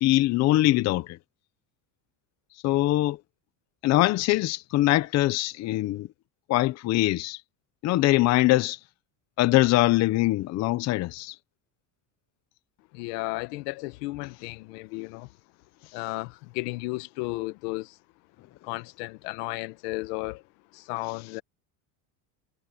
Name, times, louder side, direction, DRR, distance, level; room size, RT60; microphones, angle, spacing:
voice 1, 0.0-1.2 2.6-3.2 3.8-6.1 6.5-7.4 7.8-8.8 9.4-11.3, left 17 dB, 35° left, 0.6 m, -22 dB
voice 2, 12.9-15.3 15.9-17.9 18.6-20.4 20.7-21.4, left 23 dB, 85° left, 1.3 m, -34 dB
cardioid pair, 155°, 45 cm